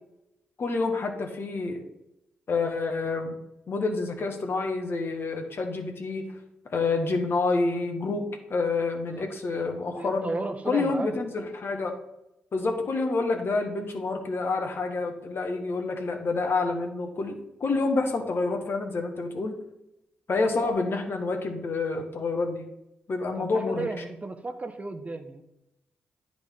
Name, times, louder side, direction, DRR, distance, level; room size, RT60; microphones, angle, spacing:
voice 1, 0.6-1.8 2.5-3.4 3.7-6.2 6.7-8.2 8.5-10.3 10.7-11.9 12.5-17.3 17.6-19.5 20.3-22.7 23.1-23.9, left 3 dB, 55° left, 4 dB, 1.3 m, -28 dB
voice 2, 9.1-9.6 10.0-11.2 23.4-25.4, right 2 dB, 30° right, 8 dB, 0.8 m, -34 dB
9.9 x 3.8 x 3.7 m, 0.87 s
hypercardioid pair, 40°, 5 cm